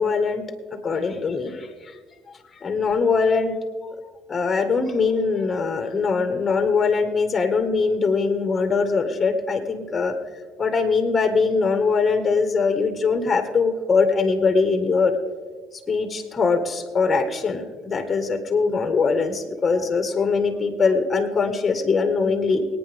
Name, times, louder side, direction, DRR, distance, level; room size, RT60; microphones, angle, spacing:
voice 1, 0.0-1.9 2.6-3.6 4.3-10.1 10.6-15.2 15.9-22.7, left 4 dB, 30° left, 7 dB, 1.7 m, -22 dB
22.5 x 9.6 x 3.6 m, 1.5 s
supercardioid pair, 75°, 0 cm